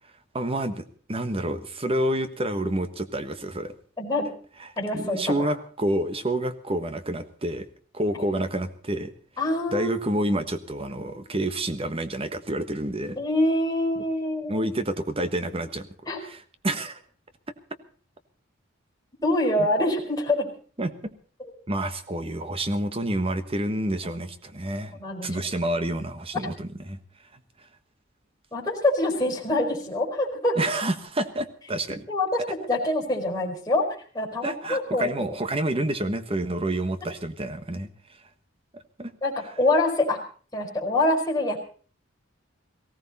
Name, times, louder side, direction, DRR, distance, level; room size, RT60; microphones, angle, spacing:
voice 1, 0.3-3.7 4.6-7.7 7.9-9.1 9.7-13.2 14.5-15.9 16.2-17.0 19.6-19.7 20.8-21.1 21.7-27.0 30.6-32.0 34.4-37.9 38.7-39.1, right 1 dB, 30° right, 10 dB, 1.3 m, -28 dB
voice 2, 4.0-4.3 4.8-5.5 9.4-10.0 13.2-14.6 16.1-16.2 19.2-20.5 21.4-21.5 25.0-25.3 28.5-30.5 32.1-32.4 32.7-35.3 39.2-40.2 40.5-41.6, left 1 dB, 20° left, -1 dB, 4.7 m, -25 dB
19.0 x 16.5 x 4.2 m, 0.44 s
head